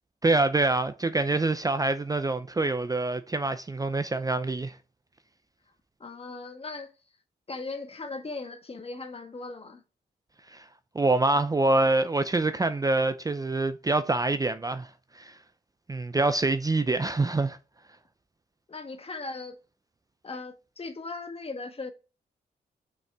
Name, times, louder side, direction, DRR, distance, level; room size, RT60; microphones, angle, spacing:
voice 1, 0.2-4.8 10.5-10.6 10.9-15.4 15.9-17.6, right 2 dB, 20° right, 0.5 m, -26 dB
voice 2, 6.0-6.9 7.5-9.8 18.7-19.6 20.2-21.9, left 3 dB, 35° left, 1.4 m, -38 dB
6.3 x 5.4 x 3.4 m
cardioid pair, 90°, 17 cm